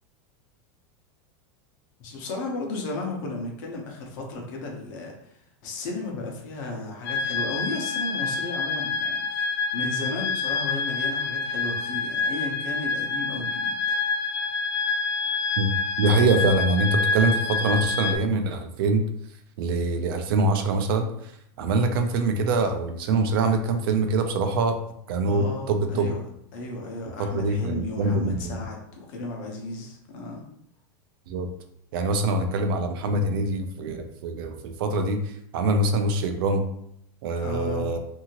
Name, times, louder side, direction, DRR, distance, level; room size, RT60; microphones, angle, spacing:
voice 1, 2.0-14.1 25.2-26.2 26.5-30.4 37.4-37.9, left 2 dB, 55° left, 0 dB, 0.8 m, -34 dB
sound 1, 7.1-18.2, left 4 dB, 80° left, 0.4 m, -27 dB
voice 2, 16.0-19.0 19.6-21.3 21.6-24.8 25.1-26.1 27.2-28.6 31.3-31.5 31.9-36.6 37.2-38.0, right 2 dB, 70° right, 6 dB, 0.5 m, -24 dB
2.7 x 2.7 x 2.8 m, 0.72 s
supercardioid pair, 165°, 12 cm